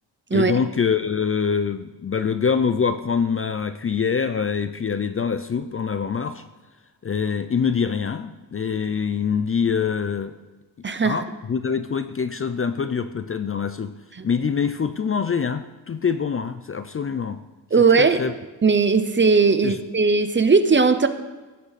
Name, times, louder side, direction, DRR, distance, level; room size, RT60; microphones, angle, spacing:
voice 1, 0.3-6.4 7.0-10.4 11.0-13.9 14.2-17.4 17.8-18.3 19.6-19.8, left 6 dB, 35° left, 11 dB, 0.4 m, -25 dB
voice 2, 10.8-11.2 14.2-14.3 17.7-18.2 18.6-21.1, right 4 dB, 30° right, 10 dB, 0.7 m, -18 dB
15.0 x 8.9 x 4.1 m, 1.2 s
wide cardioid pair, 145°, 39 cm